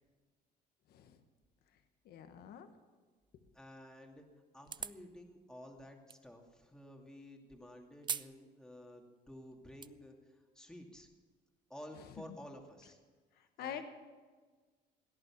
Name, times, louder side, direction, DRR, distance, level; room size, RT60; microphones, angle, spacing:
voice 1, 0.9-1.2 2.0-2.7 12.0-12.2 13.4-13.8, left 9 dB, 70° left, 8 dB, 1.3 m, -46 dB
voice 2, 3.5-4.3 4.5-11.1 11.7-13.0 13.4-13.8, left 1 dB, 5° left, 1 dB, 2.4 m, -53 dB
sound 1, 4.6-5.1 6.1-6.2 8.0-8.3 8.7-8.8 9.5-9.9, right 7 dB, 25° right, 0.4 m, -40 dB
17.0 x 10.5 x 7.2 m, 1.4 s
cardioid pair, 110°, 17 cm